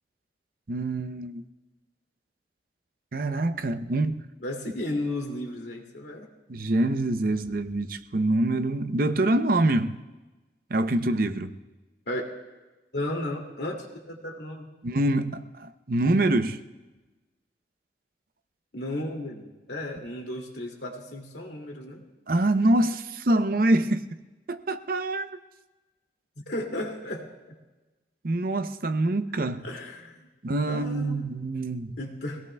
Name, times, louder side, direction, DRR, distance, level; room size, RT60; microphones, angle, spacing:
voice 1, 0.7-1.4 3.1-4.2 6.5-10.0 10.7-11.5 14.8-16.6 22.3-24.0 24.5-25.4 28.2-29.6 30.4-32.0, right 2 dB, 55° right, 0.6 m, -25 dB
voice 2, 4.4-6.3 12.1-12.3 12.9-14.7 18.7-22.0 26.5-27.6 29.6-30.3 30.7-31.3 32.0-32.4, left 1 dB, 75° left, 2.4 m, -34 dB
24.5 x 17.5 x 2.3 m
head